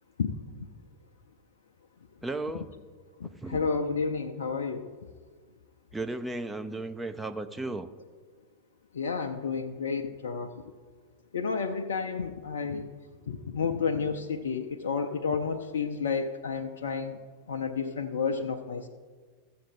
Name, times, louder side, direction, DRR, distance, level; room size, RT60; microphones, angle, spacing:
voice 1, 0.2-0.7 3.2-4.9 8.9-10.5 11.3-12.9 13.3-17.2 17.5-18.9, left 5 dB, 65° left, 5 dB, 0.5 m, -31 dB
voice 2, 2.2-2.7 3.4-3.7 5.9-7.9, right 2 dB, 10° right, 8 dB, 0.5 m, -35 dB
13.5 x 7.5 x 4.3 m, 1.5 s
figure-of-eight pair, 90°, 0 cm